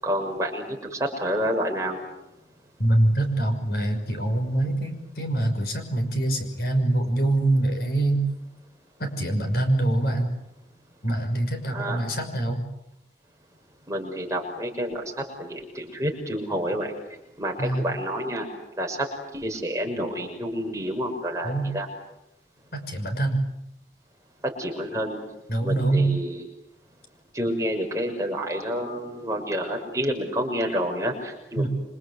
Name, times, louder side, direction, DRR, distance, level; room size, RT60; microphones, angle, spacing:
voice 1, 0.0-2.0 11.7-12.0 13.9-15.0 15.4-16.9 17.4-18.5 18.8-19.1 19.3-21.9 24.4-25.2 25.6-26.4 27.3-31.7, equal, 20° right, 1 dB, 6.3 m, -29 dB
voice 2, 2.8-8.3 9.0-10.3 11.0-12.6 17.6-17.9 21.4-21.7 22.7-23.4 25.5-26.1 31.6-31.7, right 1 dB, 60° left, 6 dB, 6.1 m, -24 dB
27.5 x 26.0 x 8.3 m, 0.85 s
head